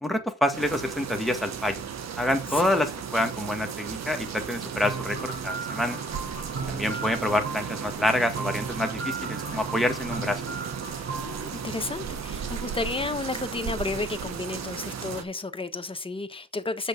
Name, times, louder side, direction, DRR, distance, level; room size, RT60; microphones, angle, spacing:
voice 1, 0.0-1.8 2.2-6.0 6.7-10.4, left 1 dB, ahead, 1.9 m, -27 dB
sound 1, 0.5-15.2, right 7 dB, 60° right, 1.6 m, -35 dB
sound 2, 4.8-12.7, right 4 dB, 45° right, 5.5 m, -37 dB
voice 2, 6.5-7.2 10.2-10.6 11.1-16.9, left 3 dB, 20° left, 1.3 m, -33 dB
7.5 x 6.4 x 6.2 m
cardioid pair, 90°, 30 cm